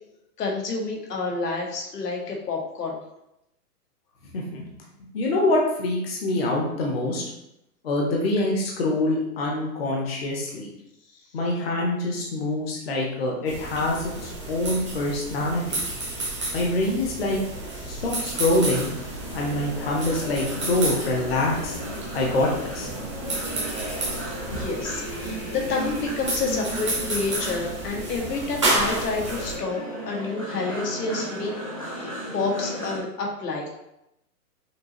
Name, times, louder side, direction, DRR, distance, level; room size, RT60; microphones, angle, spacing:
voice 1, 0.4-3.0 17.8-18.0 23.9-24.2 24.5-29.8 30.1-31.6 31.9-33.8, left 4 dB, 85° left, 0 dB, 1.4 m, -29 dB
voice 2, 4.3-4.6 5.1-7.2 7.8-10.7 11.3-15.8 16.5-17.4 17.9-18.9 19.3-21.8 22.1-22.9, left 2 dB, 40° left, -2 dB, 0.8 m, -25 dB
sound 1, 13.5-29.5, right 2 dB, 20° right, 0.6 m, -31 dB
sound 2, 18.3-33.0, right 1 dB, 25° left, 0.5 m, -35 dB
5.9 x 2.8 x 2.9 m, 0.83 s
hypercardioid pair, 180°, 47 cm